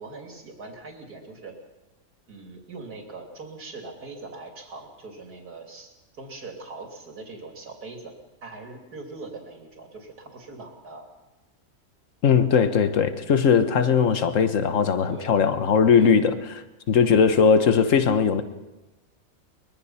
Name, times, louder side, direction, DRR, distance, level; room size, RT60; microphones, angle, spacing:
voice 1, 0.0-1.5 2.3-5.9 6.2-8.1 8.4-11.1 15.1-15.4 16.0-16.2 17.1-17.3, right 3 dB, 85° right, 2 dB, 3.6 m, -41 dB
voice 2, 12.2-16.3 16.9-18.4, left 6 dB, 55° left, 10 dB, 1.5 m, -19 dB
23.5 x 21.5 x 5.8 m, 1.1 s
omnidirectional pair, 1.6 m